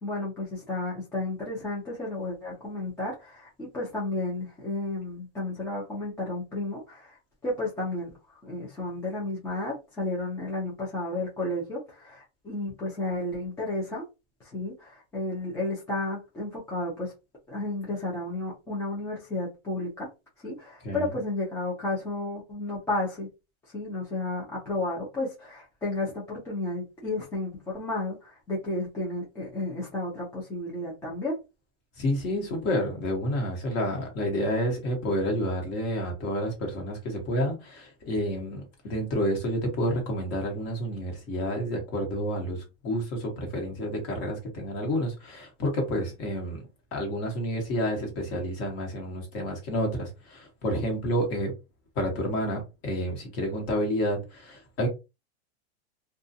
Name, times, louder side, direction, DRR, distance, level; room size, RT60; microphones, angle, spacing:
voice 1, 0.0-14.1 14.5-17.1 17.5-20.1 20.4-23.3 23.7-31.4, left 2 dB, 10° left, 0.4 m, -32 dB
voice 2, 32.0-46.6 46.9-51.5 51.9-54.9, equal, 35° left, 1.1 m, -29 dB
2.4 x 2.3 x 2.6 m
supercardioid pair, 155°, 34 cm